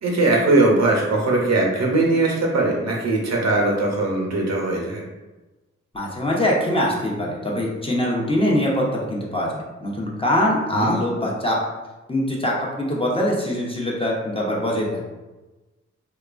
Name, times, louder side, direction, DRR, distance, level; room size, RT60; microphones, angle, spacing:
voice 1, 0.0-5.0 10.7-11.0, right 2 dB, 65° right, -1 dB, 0.7 m, -20 dB
voice 2, 5.9-11.6 12.1-14.9, left 1 dB, 20° left, -3 dB, 0.7 m, -23 dB
2.8 x 2.2 x 2.4 m, 1.1 s
cardioid pair, 50°, 29 cm